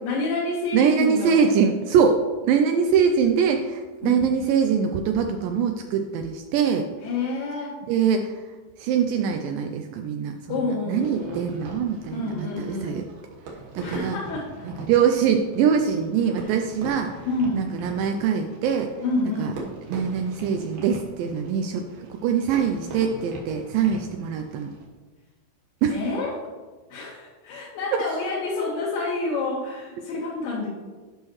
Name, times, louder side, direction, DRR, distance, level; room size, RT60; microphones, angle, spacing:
voice 1, 0.0-1.5 4.0-4.3 7.0-7.8 10.5-11.5 12.1-13.0 13.8-14.7 16.4-16.6 17.2-17.7 19.0-19.6 25.9-26.3 26.9-30.7, left 3 dB, 70° left, -5 dB, 2.6 m, -28 dB
voice 2, 0.7-6.9 7.9-8.4 8.8-13.0 13.7-14.2 14.7-17.2 17.5-18.9 19.4-19.5 19.9-24.7 25.8-26.0, right 7 dB, 90° right, 4 dB, 1.9 m, -23 dB
Fireworks, 11.0-24.9, right 2 dB, 65° right, 2.8 m, -41 dB
11.5 x 5.6 x 3.1 m, 1.3 s
omnidirectional pair, 4.5 m